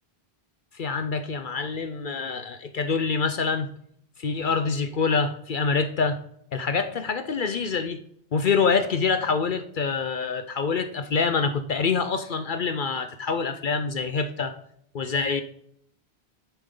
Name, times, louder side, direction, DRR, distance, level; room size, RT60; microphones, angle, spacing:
voice 1, 0.7-3.7 4.2-6.2 6.5-8.0 8.3-14.5 14.9-15.4, left 5 dB, 55° left, 9 dB, 0.8 m, -26 dB
10.5 x 7.0 x 3.8 m, 0.69 s
omnidirectional pair, 1.1 m